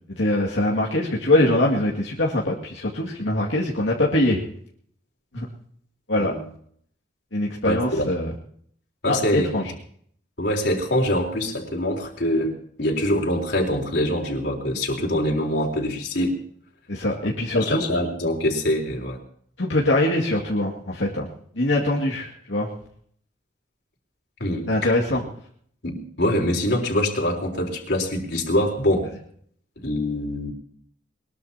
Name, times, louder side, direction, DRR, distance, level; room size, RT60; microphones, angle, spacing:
voice 1, 0.2-4.4 5.3-5.4 6.1-6.3 7.3-8.3 9.1-9.6 16.9-17.8 19.6-21.3 21.6-22.7 24.7-25.2, left 1 dB, 80° left, -4 dB, 2.3 m, -22 dB
voice 2, 7.6-8.1 9.0-9.6 10.4-16.3 17.5-19.2 24.4-24.9 25.8-29.1 29.8-30.5, left 1 dB, 60° left, 0 dB, 3.8 m, -24 dB
22.0 x 21.0 x 2.9 m, 0.62 s
head